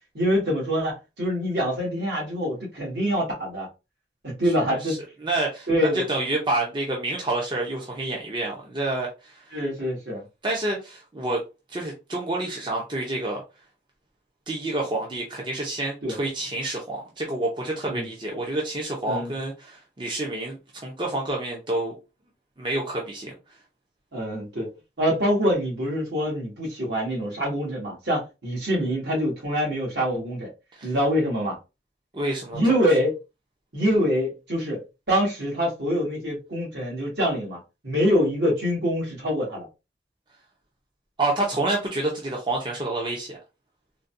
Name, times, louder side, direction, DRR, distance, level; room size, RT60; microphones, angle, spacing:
voice 1, 0.1-3.7 4.2-5.0 5.7-6.1 9.5-10.2 16.0-16.2 17.9-18.1 19.0-19.3 24.1-24.7 25.0-30.5 30.8-31.6 32.5-33.1 33.7-34.8 35.1-39.7, equal, 70° right, 1.8 m, -25 dB
voice 2, 4.4-5.0 5.2-5.7 5.9-9.3 10.4-11.4 11.7-13.4 14.5-21.9 22.6-23.3 30.8-30.9 32.1-32.6 41.2-43.4, right 2 dB, 25° right, 0.7 m, -28 dB
3.8 x 2.2 x 2.6 m
head